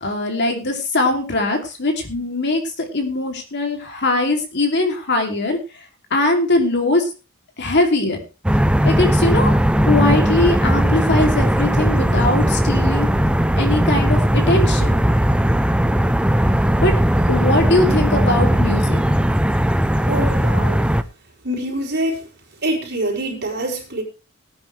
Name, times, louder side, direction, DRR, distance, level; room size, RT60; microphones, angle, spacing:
voice 1, 0.0-5.6 6.1-7.1 7.6-8.2 8.8-9.5 9.9-13.1 13.6-15.0 16.8-16.9 17.3-19.0, left 2 dB, 55° left, 2.9 m, -20 dB
sound 1, 8.4-21.0, equal, 5° right, 0.6 m, -17 dB
voice 2, 20.1-20.8 21.4-22.3 22.6-24.0, right 1 dB, 50° right, 5.0 m, -25 dB
18.5 x 9.6 x 3.3 m
head